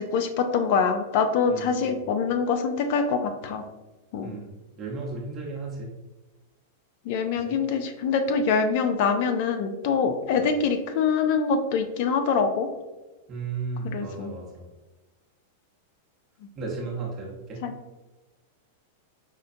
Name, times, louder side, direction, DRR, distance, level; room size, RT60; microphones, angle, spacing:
voice 1, 0.0-3.6 4.1-4.3 7.0-12.7 13.9-14.3 17.6-17.7, left 5 dB, 55° left, 7 dB, 0.5 m, -24 dB
voice 2, 1.5-2.0 4.2-4.5 4.8-5.9 7.3-7.6 10.3-10.5 13.3-14.7 16.5-17.6, right 3 dB, 35° right, -3 dB, 0.8 m, -35 dB
5.0 x 2.2 x 2.6 m, 1.1 s
hypercardioid pair, 120°, 0 cm